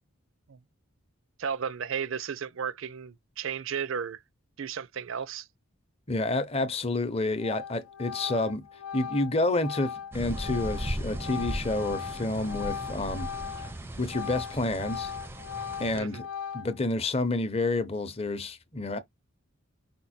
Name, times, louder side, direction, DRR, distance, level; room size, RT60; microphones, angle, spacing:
voice 1, 1.4-4.2 4.6-5.5 15.9-16.2, right 7 dB, 65° right, 0.5 m, -34 dB
voice 2, 6.1-8.6 8.9-13.3 13.6-13.7 14.0-15.1 15.8-16.3 16.5-19.0, left 2 dB, 30° left, 0.7 m, -29 dB
Organ, 6.8-7.1 7.4-13.7 14.0-16.9, left 7 dB, 80° left, 0.5 m, -38 dB
sound 1, 10.1-16.0, right 1 dB, 10° right, 0.5 m, -37 dB
5.3 x 2.2 x 4.2 m
head